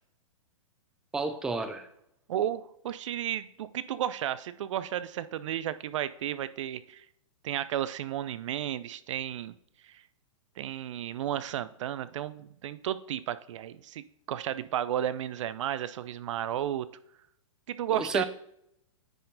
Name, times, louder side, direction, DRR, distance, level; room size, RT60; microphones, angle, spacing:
voice 1, 1.1-1.9 17.9-18.2, right 3 dB, 5° right, 9 dB, 0.4 m, -31 dB
voice 2, 2.3-7.0 7.4-9.6 9.8-10.0 10.6-16.9 17.7-18.2, right 11 dB, 65° right, 15 dB, 0.5 m, -33 dB
9.8 x 4.4 x 3.9 m, 0.77 s
hypercardioid pair, 135°, 17 cm